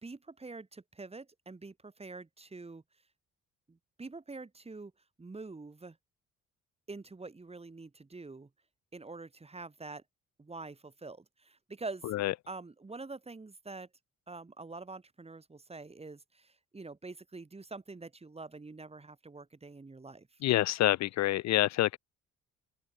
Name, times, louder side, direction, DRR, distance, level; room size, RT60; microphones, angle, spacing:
voice 1, 0.0-2.8 3.7-4.9 5.2-6.0 6.9-8.5 8.9-10.0 10.4-12.1 12.5-13.9 14.3-20.3, right 3 dB, 20° right, 2.3 m, -46 dB
voice 2, 20.4-22.0, left 15 dB, 65° left, 0.5 m, -27 dB
open air
cardioid pair, 90°, 30 cm